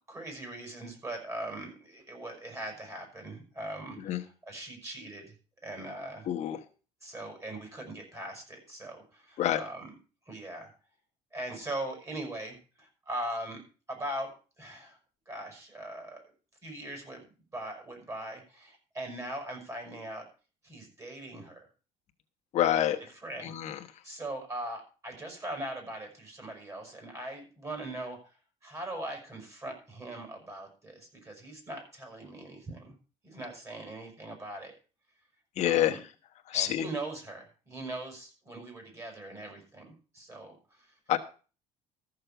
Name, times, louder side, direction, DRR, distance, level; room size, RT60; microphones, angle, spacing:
voice 1, 0.1-5.3 5.6-6.3 7.0-9.9 10.3-10.7 11.3-13.6 13.9-15.0 15.3-16.2 16.6-17.2 17.5-20.3 20.6-21.7 23.2-28.4 28.6-32.9 33.2-34.7 35.6-36.0 36.5-40.9, right 1 dB, 20° right, 4 dB, 6.3 m, -40 dB
voice 2, 6.3-6.6 9.4-9.6 22.5-23.0 23.4-23.8 35.6-36.0 36.5-36.9 41.1-41.2, left 12 dB, 55° left, 4 dB, 1.2 m, -27 dB
14.0 x 6.5 x 7.1 m, 0.36 s
cardioid pair, 130°, 14 cm